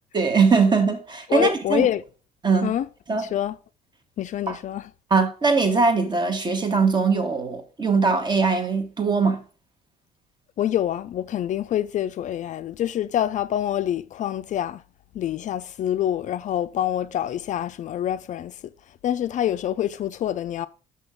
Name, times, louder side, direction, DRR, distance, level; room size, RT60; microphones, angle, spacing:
voice 1, 0.1-1.9 2.4-2.7 3.1-3.2 4.5-4.6 5.1-9.4, right 4 dB, 25° right, 1.1 m, -21 dB
voice 2, 1.3-2.0 2.6-2.9 3.2-3.6 4.2-4.9 10.6-14.8 15.1-20.7, left 11 dB, 50° left, 0.4 m, -26 dB
6.1 x 5.7 x 3.5 m
cardioid pair, 110°, 17 cm